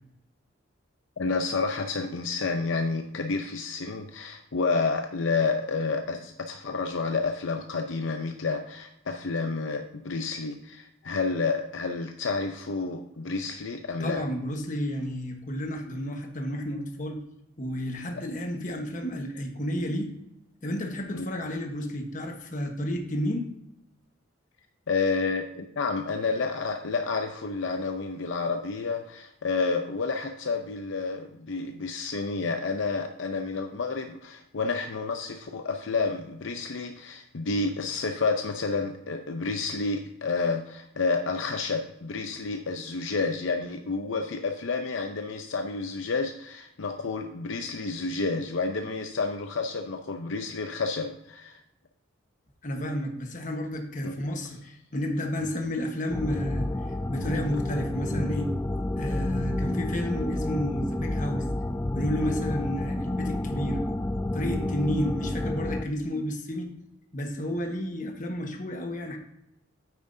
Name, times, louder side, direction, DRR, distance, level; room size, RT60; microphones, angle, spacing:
voice 1, 1.2-14.2 21.1-21.3 24.9-51.6 54.0-54.1 55.4-55.5 62.2-62.5, left 4 dB, 70° left, 5 dB, 0.6 m, -30 dB
voice 2, 14.0-17.2 17.6-20.1 20.6-23.5 52.6-56.7 57.1-58.5 59.0-61.5 61.9-63.8 64.3-66.7 67.1-69.2, equal, 40° left, 3 dB, 1.2 m, -31 dB
sound 1, 56.1-65.9, left 1 dB, 10° left, 0.3 m, -30 dB
9.3 x 8.6 x 2.7 m, 0.82 s
head